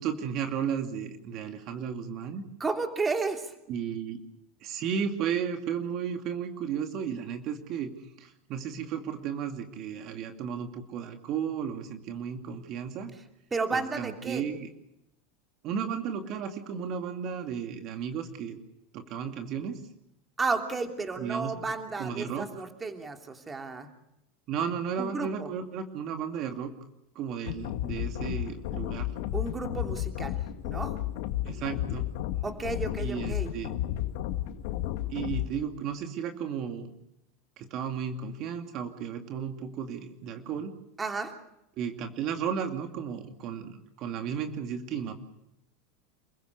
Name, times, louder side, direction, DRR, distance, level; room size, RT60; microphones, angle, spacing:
voice 1, 0.0-2.4 3.7-4.2 4.6-13.1 13.7-14.7 15.6-18.6 18.9-19.8 21.2-21.5 22.0-22.6 24.5-26.7 27.1-29.1 31.4-32.1 33.0-33.7 35.1-36.9 37.6-40.7 41.8-45.1, right 7 dB, 50° right, 5 dB, 2.4 m, -34 dB
voice 2, 2.6-3.5 13.5-14.4 20.4-23.9 25.0-25.5 29.3-30.4 30.6-30.9 32.4-33.5 41.0-41.3, right 4 dB, 20° right, 4 dB, 3.0 m, -32 dB
sound 1, 27.5-35.5, left 13 dB, 70° left, 2.2 m, -32 dB
28.5 x 16.0 x 8.3 m, 0.84 s
supercardioid pair, 110°, 0 cm